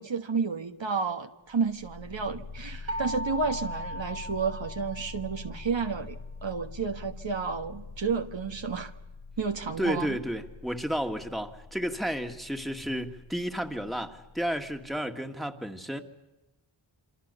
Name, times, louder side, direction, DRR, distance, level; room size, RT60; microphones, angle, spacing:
voice 1, 0.0-8.9 9.4-10.2, right 5 dB, 65° right, 1.5 m, -31 dB
sound 1, 1.5-15.0, left 4 dB, 85° left, 6.2 m, -45 dB
sound 2, 2.9-5.7, equal, 30° right, 1.4 m, -37 dB
voice 2, 9.8-16.0, equal, ahead, 2.1 m, -32 dB
27.5 x 25.5 x 7.0 m
wide cardioid pair, 50°, 47 cm